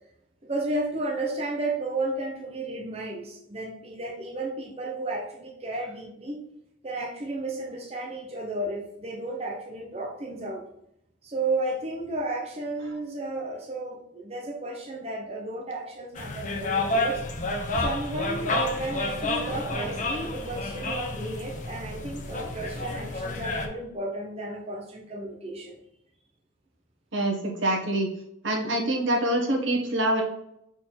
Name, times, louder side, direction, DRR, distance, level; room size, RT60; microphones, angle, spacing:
voice 1, 0.4-6.4 6.8-10.7 11.2-17.2 17.8-25.8, right 2 dB, 30° right, -1 dB, 0.9 m, -33 dB
sound 1, 16.1-23.7, left 2 dB, 40° left, 1.0 m, -30 dB
voice 2, 27.1-28.1 28.4-30.2, right 1 dB, 75° right, 1 dB, 1.6 m, -25 dB
4.5 x 4.3 x 5.8 m, 0.77 s
head